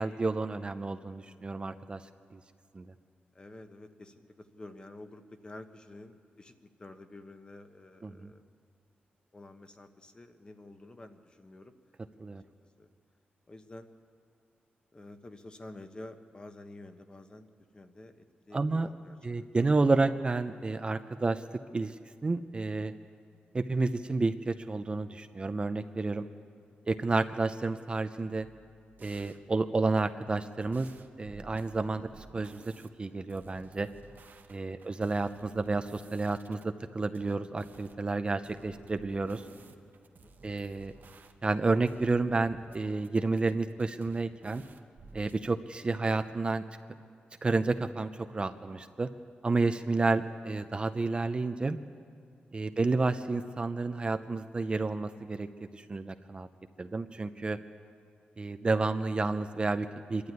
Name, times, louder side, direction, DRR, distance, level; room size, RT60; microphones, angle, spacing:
voice 1, 0.0-2.0 2.3-2.4 2.7-2.9 8.0-8.3 12.2-12.4 18.5-18.9 19.2-21.4 21.7-22.0 22.2-22.9 23.5-26.2 26.9-28.5 29.0-30.9 31.2-32.6 33.0-33.9 34.5-39.4 40.4-40.9 41.4-44.6 45.1-46.6 47.4-49.1 49.4-51.8 52.5-56.5 56.8-57.6 58.4-60.3, right 3 dB, 30° right, 9 dB, 0.6 m, -30 dB
voice 2, 1.2-1.5 3.3-8.4 9.3-11.7 12.8-12.9 13.5-13.9 14.9-17.5 17.7-19.4 26.6-26.7 34.5-34.8 35.9-36.0 39.8-40.3 49.7-49.8 52.5-52.7 57.5-57.7, left 2 dB, 25° left, 7 dB, 1.1 m, -50 dB
sound 1, 28.4-29.4 30.6-32.9 33.3-36.6 37.2-38.0 38.4-41.6 41.9-42.8 43.0-45.4, right 4 dB, 60° right, 1.1 m, -54 dB
24.5 x 12.0 x 9.4 m, 2.3 s
wide cardioid pair, 120°, 4 cm